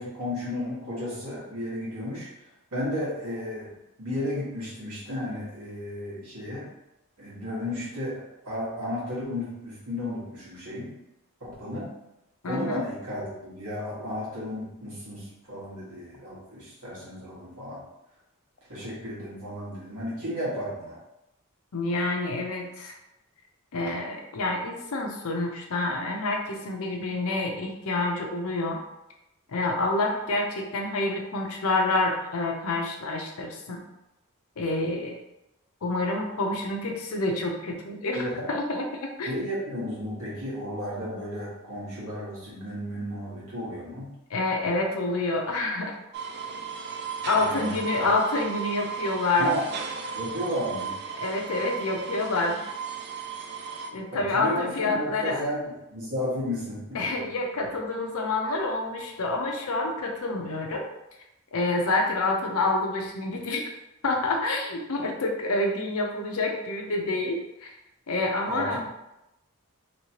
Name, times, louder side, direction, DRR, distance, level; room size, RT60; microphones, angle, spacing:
voice 1, 0.0-2.3 2.7-3.7 4.0-6.7 7.2-10.9 11.4-11.9 12.5-17.8 18.7-21.0 38.1-38.5 39.2-44.1 47.3-48.1 49.4-49.6 50.1-50.9 54.1-57.2 68.5-68.8, left 1 dB, 75° right, -7 dB, 1.5 m, -33 dB
voice 2, 12.4-12.8 21.7-22.9 23.7-28.8 29.5-33.8 34.6-35.1 35.8-39.3 44.3-46.0 47.2-49.5 51.2-52.6 53.9-55.4 56.9-60.9 61.5-63.7 64.0-67.7 68.1-68.8, left 2 dB, 70° left, 1 dB, 0.6 m, -28 dB
sound 1, 46.1-53.9, right 6 dB, 50° right, 0.4 m, -35 dB
3.1 x 2.9 x 2.8 m, 0.89 s
head